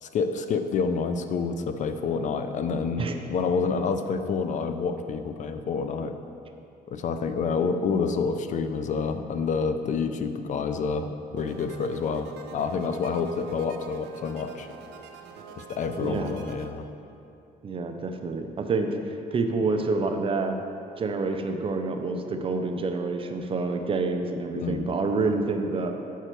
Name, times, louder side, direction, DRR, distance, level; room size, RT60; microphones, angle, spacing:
voice 1, 0.0-6.1 6.9-14.7 15.6-16.8 24.6-24.9, left 5 dB, 45° left, 8 dB, 0.4 m, -28 dB
sound 1, 11.4-16.7, right 5 dB, 85° right, 0.6 m, -45 dB
voice 2, 16.0-16.3 17.6-20.6 21.0-25.9, right 3 dB, 30° right, 5 dB, 0.5 m, -28 dB
7.8 x 4.6 x 4.5 m, 2.6 s
cardioid pair, 110°, 17 cm